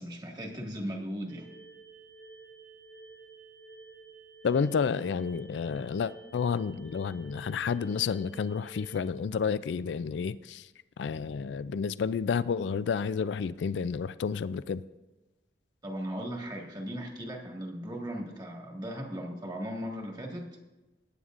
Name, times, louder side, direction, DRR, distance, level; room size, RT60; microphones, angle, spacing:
voice 1, 0.0-1.5 15.8-20.5, equal, 25° right, 1 dB, 1.7 m, -37 dB
sound 1, 1.3-9.1, right 3 dB, 80° right, 1.9 m, -51 dB
voice 2, 4.4-10.7 11.0-14.8, left 6 dB, 80° left, 16 dB, 0.4 m, -30 dB
18.5 x 9.5 x 2.5 m, 1.1 s
head